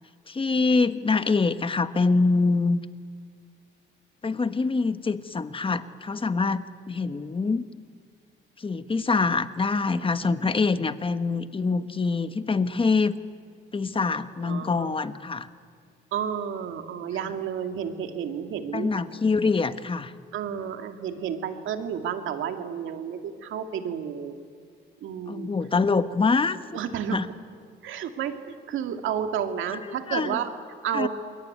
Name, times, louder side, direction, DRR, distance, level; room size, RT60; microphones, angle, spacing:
voice 1, 0.3-2.8 4.2-7.6 8.6-13.1 13.7-15.5 18.7-20.1 25.3-26.8 27.1-27.3 30.1-30.4 30.9-31.1, left 4 dB, 25° left, 11 dB, 1.3 m, -25 dB
voice 2, 14.1-14.9 16.1-18.9 20.3-24.4 25.0-25.5 26.7-27.2 27.8-30.5 30.8-31.1, right 8 dB, 80° right, 6 dB, 2.4 m, -31 dB
28.0 x 22.0 x 9.6 m, 2.1 s
cardioid pair, 90°, 20 cm